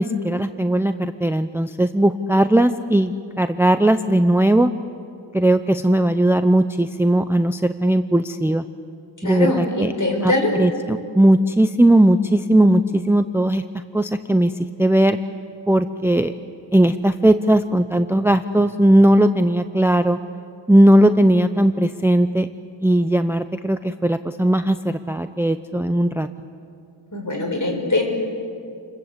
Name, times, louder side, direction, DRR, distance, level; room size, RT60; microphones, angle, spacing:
voice 1, 0.0-4.7 5.3-8.6 9.2-9.9 10.2-13.6 13.9-14.5 14.8-15.2 15.7-16.3 16.7-20.2 20.7-22.5 22.8-26.3, right 1 dB, 5° right, 10 dB, 0.7 m, -18 dB
voice 2, 9.2-10.5 27.1-28.0, left 2 dB, 40° left, 2 dB, 5.9 m, -22 dB
29.5 x 21.5 x 8.1 m, 2.4 s
wide cardioid pair, 65°, 46 cm